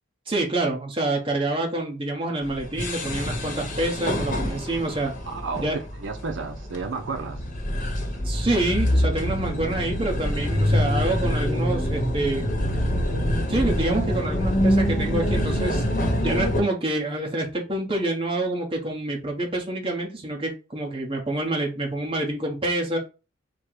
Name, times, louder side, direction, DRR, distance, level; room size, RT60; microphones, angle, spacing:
voice 1, 0.3-5.1 5.6-5.8 8.2-12.5 13.5-15.8 16.2-23.0, right 2 dB, 25° right, 1.1 m, -27 dB
sound 1, 2.4-16.6, equal, 40° left, 1.0 m, -25 dB
voice 2, 5.3-7.4, right 4 dB, 75° right, 0.6 m, -32 dB
4.4 x 2.2 x 4.7 m
head